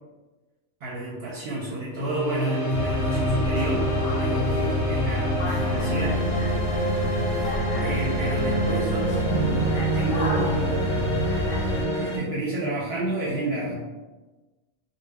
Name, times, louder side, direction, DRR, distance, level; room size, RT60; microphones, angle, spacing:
voice 1, 0.8-3.9 4.2-6.2 7.8-11.2 11.9-13.7, right 2 dB, 65° right, -5 dB, 0.7 m, -31 dB
sound 1, 1.9-12.2, right 1 dB, 25° right, 0.5 m, -27 dB
sound 2, 2.7-11.9, left 1 dB, 90° left, 0.9 m, -28 dB
2.1 x 2.1 x 3.3 m, 1.2 s
omnidirectional pair, 1.2 m